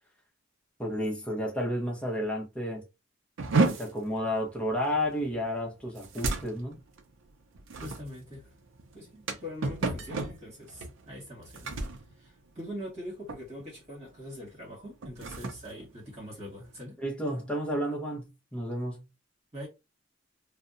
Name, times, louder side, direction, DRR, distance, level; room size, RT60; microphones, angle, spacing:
voice 1, 0.8-2.8 3.6-6.8 17.0-19.0, equal, 5° left, 0.8 m, -31 dB
sound 1, 3.4-13.0 13.3-13.7 14.1-14.3 14.9-16.8, right 3 dB, 70° right, 0.5 m, -33 dB
voice 2, 7.8-8.5 8.9-11.8 12.1-17.0 19.5-19.7, equal, 35° right, 1.4 m, -43 dB
2.7 x 2.1 x 2.4 m
head